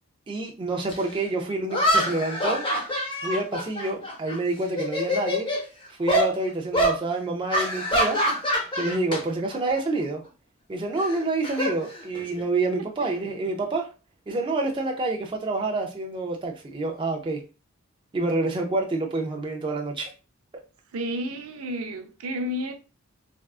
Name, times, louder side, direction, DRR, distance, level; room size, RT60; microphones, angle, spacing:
voice 1, 0.3-2.6 3.2-5.5 5.9-8.2 8.8-10.2 10.7-13.9 14.3-17.4 18.1-20.1, right 2 dB, 20° right, 0.3 m, -28 dB
sound 1, 0.9-1.0 1.7-4.4 4.7-5.6 6.1-6.3 6.7-7.0 7.5-9.2 9.5-9.8 11.0-12.4, equal, 25° left, 0.7 m, -25 dB
voice 2, 20.9-22.7, equal, 75° right, 0.5 m, -31 dB
3.4 x 2.3 x 2.3 m
head